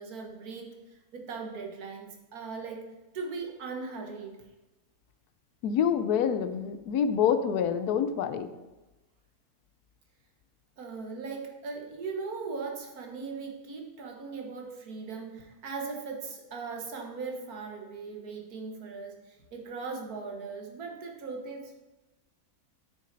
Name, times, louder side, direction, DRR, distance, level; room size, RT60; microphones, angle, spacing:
voice 1, 0.0-2.9 3.1-4.4 10.8-21.8, right 4 dB, 75° right, 2 dB, 1.7 m, -39 dB
voice 2, 5.6-8.6, left 8 dB, 85° left, 11 dB, 1.2 m, -27 dB
8.7 x 6.2 x 4.0 m, 1.1 s
omnidirectional pair, 1.6 m